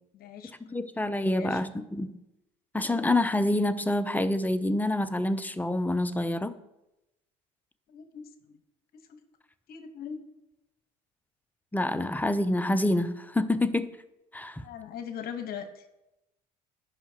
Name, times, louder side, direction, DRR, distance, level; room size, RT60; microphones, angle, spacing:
voice 1, 0.1-0.5 1.2-1.6 7.9-8.6 9.1-9.2 9.7-10.2 14.6-15.8, left 7 dB, 60° left, 1.2 m, -40 dB
voice 2, 0.7-2.2 2.7-6.6 11.7-13.9 14.3-14.6, left 1 dB, 10° left, 0.6 m, -27 dB
16.5 x 5.6 x 2.9 m
supercardioid pair, 85°, 18 cm